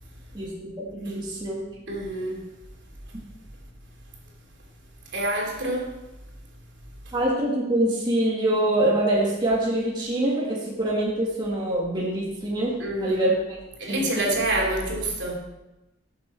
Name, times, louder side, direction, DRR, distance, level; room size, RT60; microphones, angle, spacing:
voice 1, 0.3-1.6 7.1-13.3 13.9-14.2, right 1 dB, 20° right, 2.0 m, -25 dB
voice 2, 1.9-2.5 5.1-5.9 12.8-13.3 13.8-15.3, right 1 dB, 65° right, 3.2 m, -27 dB
18.0 x 7.1 x 4.5 m
head